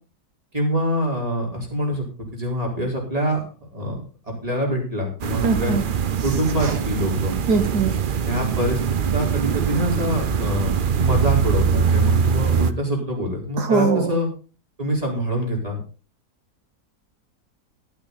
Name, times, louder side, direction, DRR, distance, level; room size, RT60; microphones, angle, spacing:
voice 1, 0.5-2.0 2.3-3.4 3.7-4.0 4.3-5.7 6.2-7.4 8.2-14.3 14.8-15.8, equal, 25° right, -1 dB, 4.5 m, -25 dB
sound 1, 5.2-12.7, right 6 dB, 50° right, 0.6 m, -22 dB
voice 2, 5.4-5.8 6.6-6.7 7.5-7.9 13.6-14.2, right 4 dB, 85° right, 6 dB, 1.9 m, -21 dB
12.0 x 12.0 x 4.1 m, 0.36 s
omnidirectional pair, 1.7 m